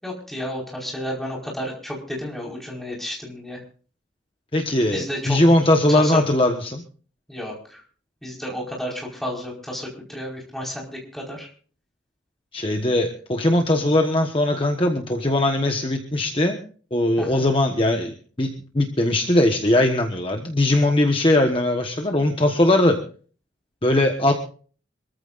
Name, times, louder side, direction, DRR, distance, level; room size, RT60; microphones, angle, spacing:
voice 1, 0.0-3.6 4.9-5.4 5.9-6.2 7.3-7.8 8.2-11.5 17.2-17.5, equal, ahead, -2 dB, 4.8 m, -32 dB
voice 2, 4.5-6.8 12.5-16.6 16.9-18.5 18.7-23.0 23.8-24.3, left 1 dB, 25° left, 3 dB, 1.3 m, -20 dB
26.0 x 14.5 x 2.6 m, 0.42 s
head